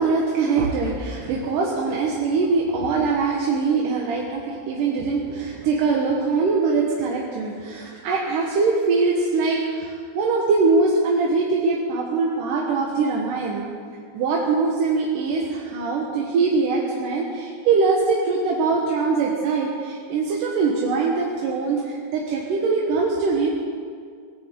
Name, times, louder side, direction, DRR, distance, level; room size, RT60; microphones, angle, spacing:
voice 1, 0.0-13.7 14.1-23.5, right 4 dB, 65° right, -2 dB, 2.5 m, -22 dB
18.5 x 16.5 x 3.8 m, 2.1 s
omnidirectional pair, 4.6 m